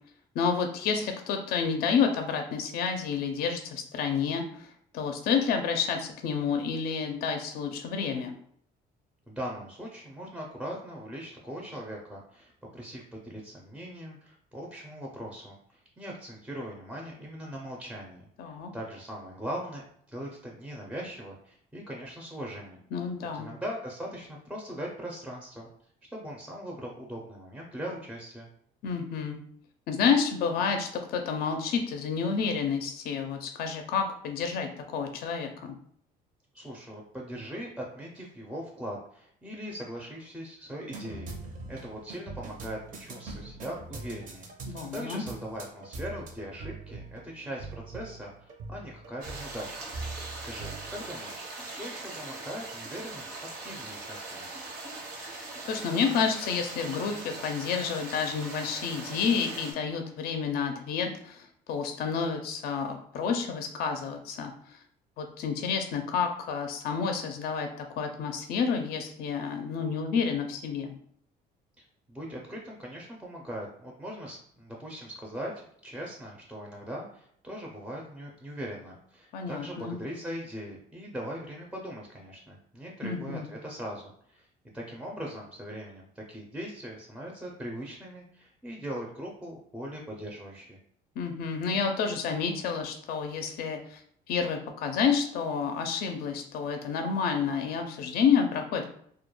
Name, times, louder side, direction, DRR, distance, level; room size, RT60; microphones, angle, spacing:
voice 1, 0.4-4.7 4.9-8.3 18.4-18.7 22.9-23.5 28.8-29.4 29.9-35.8 44.7-45.2 55.7-64.5 65.2-67.7 68.0-70.9 79.3-80.0 83.0-83.5 91.2-94.0 94.3-98.9, left 6 dB, 65° left, 5 dB, 0.4 m, -29 dB
voice 2, 9.3-19.8 20.1-22.8 23.3-25.7 26.1-28.5 36.5-44.5 44.9-49.8 50.1-53.3 53.6-54.5 72.1-84.5 84.7-90.8, equal, 5° right, -1 dB, 0.4 m, -40 dB
sound 1, 40.9-51.8, right 3 dB, 50° right, 0.6 m, -43 dB
sound 2, 49.2-59.7, right 3 dB, 80° right, 0.9 m, -41 dB
2.2 x 2.1 x 2.9 m, 0.64 s
cardioid pair, 110°, 17 cm